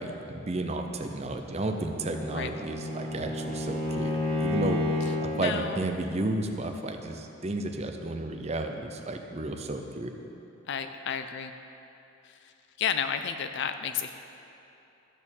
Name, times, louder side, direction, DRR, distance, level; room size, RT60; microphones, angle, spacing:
voice 1, 0.0-4.8 5.2-10.1, right 2 dB, 30° right, 5 dB, 0.6 m, -32 dB
Bowed string instrument, 1.6-5.5, left 2 dB, 5° left, 1.6 m, -31 dB
voice 2, 5.3-5.9 10.7-11.5 12.2-12.5 12.8-14.1, left 7 dB, 55° left, 8 dB, 0.4 m, -32 dB
13.0 x 4.3 x 7.1 m, 2.9 s
head